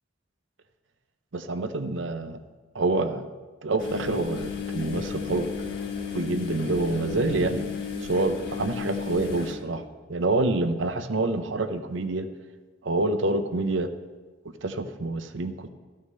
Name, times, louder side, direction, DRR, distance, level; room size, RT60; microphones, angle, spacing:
voice 1, 1.3-2.4 2.7-3.3 3.6-5.5 6.1-7.7 8.0-9.8 10.1-12.3 12.8-13.9 14.4-15.7, right 2 dB, 70° right, 9 dB, 0.7 m, -27 dB
sound 1, 3.8-9.5, left 6 dB, 55° left, 1.6 m, -33 dB
13.5 x 6.5 x 5.5 m, 1.3 s
head